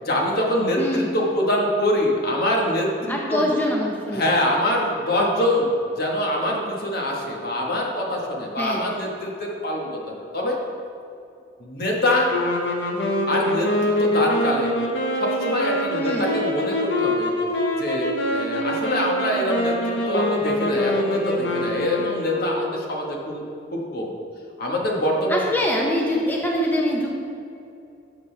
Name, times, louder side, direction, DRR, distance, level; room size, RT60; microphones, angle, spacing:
voice 1, 0.0-3.5 4.1-10.6 11.6-12.3 13.3-14.8 15.2-17.3 17.8-23.4 23.7-24.1 24.6-25.5, left 1 dB, 55° left, -1 dB, 1.4 m, -24 dB
voice 2, 0.8-1.1 3.1-4.3 8.6-8.9 16.0-16.4 25.3-27.1, equal, 10° left, -2 dB, 0.8 m, -24 dB
sound 1, 12.3-22.7, left 1 dB, 75° left, 1.2 m, -24 dB
11.5 x 6.2 x 3.4 m, 2.7 s
head